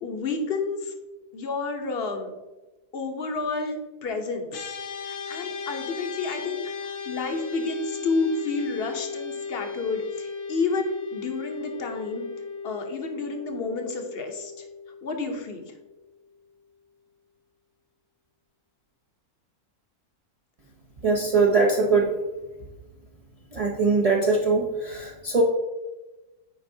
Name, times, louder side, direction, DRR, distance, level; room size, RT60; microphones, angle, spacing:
voice 1, 0.0-0.9 1.3-2.3 2.9-4.8 5.0-12.3 12.6-14.7 15.0-15.7, left 3 dB, 50° left, 5 dB, 0.9 m, -30 dB
sound 1, 4.5-16.0, left 5 dB, 75° left, 1.2 m, -36 dB
voice 2, 21.0-22.1 23.5-25.4, right 4 dB, 40° right, -2 dB, 0.5 m, -22 dB
8.9 x 4.7 x 2.7 m, 1.1 s
omnidirectional pair, 1.5 m